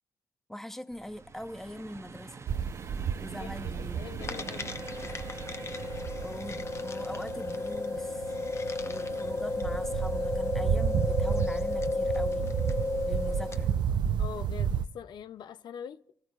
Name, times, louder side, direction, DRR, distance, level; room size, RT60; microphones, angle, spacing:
voice 1, 0.5-2.4 3.2-4.0 6.2-8.4 8.8-12.5 13.1-13.7, left 1 dB, 5° left, 0.9 m, -42 dB
sound 1, 0.9-12.0 12.7-13.3 14.2-14.4 14.7-14.8, right 4 dB, 40° right, 0.7 m, -50 dB
sound 2, 2.5-14.8, right 8 dB, 85° right, 0.5 m, -33 dB
voice 2, 3.4-4.8 14.2-16.0, left 8 dB, 80° left, 0.4 m, -43 dB
sound 3, 4.2-13.7, left 3 dB, 40° left, 0.8 m, -33 dB
30.0 x 14.0 x 2.4 m
cardioid pair, 90°, 8 cm